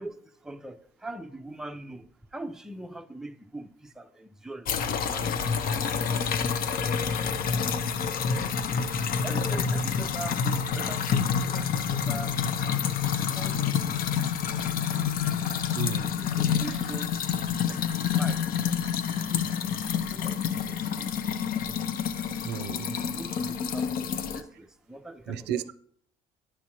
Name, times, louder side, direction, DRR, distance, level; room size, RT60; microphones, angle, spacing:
voice 1, 0.0-2.1 2.3-5.3 5.7-5.8 9.2-12.8 13.3-14.8 16.2-17.1 17.5-18.5 19.2-19.5 20.0-21.6 22.9-25.7, right 2 dB, 5° right, 0.5 m, -43 dB
sound 1, 4.7-24.4, left 7 dB, 60° left, 0.7 m, -28 dB
voice 2, 15.7-16.1 22.4-22.9 25.3-25.7, right 9 dB, 80° right, 0.4 m, -33 dB
10.0 x 6.0 x 2.9 m
cardioid pair, 110°, 17 cm